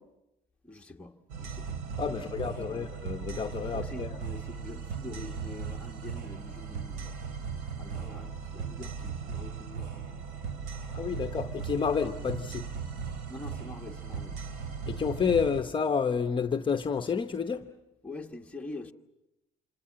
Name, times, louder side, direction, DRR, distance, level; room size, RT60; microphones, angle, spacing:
voice 1, 0.6-1.8 2.1-2.4 2.7-2.9 3.7-7.2 7.8-10.0 13.3-14.4 18.0-18.9, left 2 dB, 5° left, 1.5 m, -45 dB
sound 1, 1.3-15.6, right 6 dB, 90° right, 2.9 m, -38 dB
voice 2, 2.0-4.2 10.9-12.7 14.9-17.7, left 6 dB, 30° left, 0.9 m, -30 dB
27.0 x 25.5 x 7.5 m
cardioid pair, 110°, 17 cm